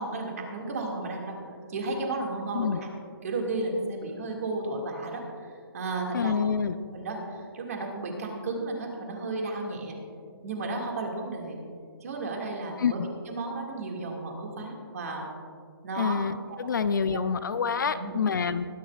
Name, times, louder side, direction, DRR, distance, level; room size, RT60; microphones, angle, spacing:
voice 1, 0.0-1.4 1.7-2.9 3.2-6.4 6.9-10.0 10.4-11.6 12.0-15.3 15.8-16.2 16.5-16.7 17.1-17.2 17.8-18.2, right 2 dB, 40° right, 0 dB, 2.1 m, -33 dB
voice 2, 6.1-6.8 12.8-13.1 16.0-18.7, left 6 dB, 55° left, 12 dB, 0.5 m, -27 dB
21.5 x 10.5 x 2.4 m, 2.1 s
hypercardioid pair, 180°, 13 cm